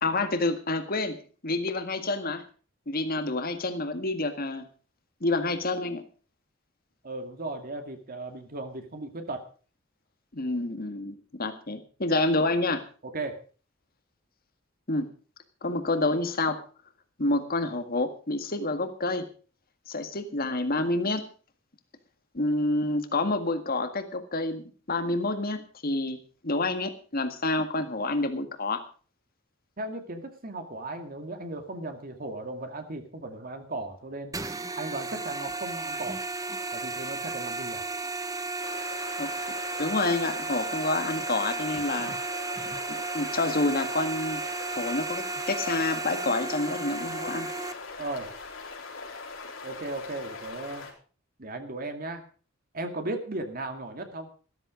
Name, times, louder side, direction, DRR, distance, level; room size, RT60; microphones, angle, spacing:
voice 1, 0.0-2.4 2.9-4.6 5.2-6.0 10.3-12.8 14.9-15.1 15.6-16.6 17.2-19.3 19.9-21.3 22.3-26.2 26.4-28.8 39.2-39.3 39.8-42.1 42.7-42.8 43.1-44.4 44.7-47.5, left 2 dB, 50° left, 8 dB, 1.8 m, -28 dB
voice 2, 7.0-9.4 13.0-13.4 29.8-34.3 34.8-36.2 36.7-37.9 48.0-48.3 49.6-50.9 51.4-52.2 52.7-54.3, right 2 dB, 45° right, 6 dB, 2.2 m, -36 dB
sound 1, 34.3-47.7, right 3 dB, 15° right, 1.0 m, -34 dB
sound 2, 38.6-50.9, left 4 dB, 75° left, 4.1 m, -41 dB
13.5 x 13.5 x 5.1 m, 0.39 s
head